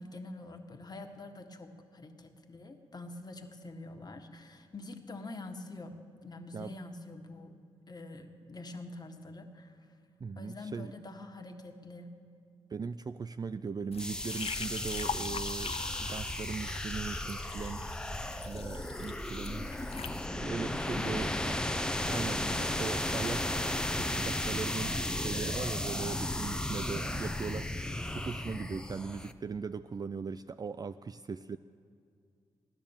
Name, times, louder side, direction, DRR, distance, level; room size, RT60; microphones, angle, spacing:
voice 1, 0.0-6.0 6.2-7.6 7.9-9.9 10.3-12.1 20.9-21.4 21.7-22.7, left 2 dB, 35° left, 5 dB, 1.6 m, -46 dB
voice 2, 10.2-10.9 12.7-17.9 18.4-20.0 20.3-21.6 22.1-31.6, right 5 dB, 35° right, 12 dB, 0.4 m, -39 dB
sound 1, 13.9-20.3, left 6 dB, 60° left, 0.7 m, -42 dB
sound 2, 14.0-29.3, left 1 dB, 5° left, 0.8 m, -35 dB
16.5 x 10.5 x 7.2 m, 2.3 s
supercardioid pair, 55°, 12 cm